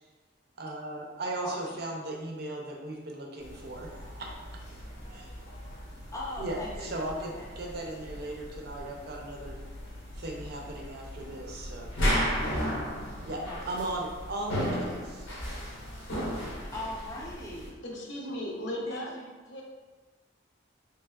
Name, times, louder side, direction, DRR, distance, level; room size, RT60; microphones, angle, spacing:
voice 1, 0.6-4.6 5.1-5.3 6.4-9.6 10.2-11.9 13.2-15.3, right 2 dB, 55° right, 0 dB, 0.5 m, -37 dB
voice 2, 1.4-1.8 6.1-7.5 8.0-8.1 13.5-13.6 14.7-15.0 16.7-17.8 18.9-19.3, left 1 dB, 15° left, -4 dB, 0.6 m, -40 dB
sound 1, 3.4-17.7, equal, 90° left, 1.0 m, -35 dB
voice 3, 17.8-19.1 19.4-19.6, left 1 dB, 70° left, -2 dB, 0.7 m, -36 dB
3.4 x 3.3 x 2.3 m, 1.3 s
head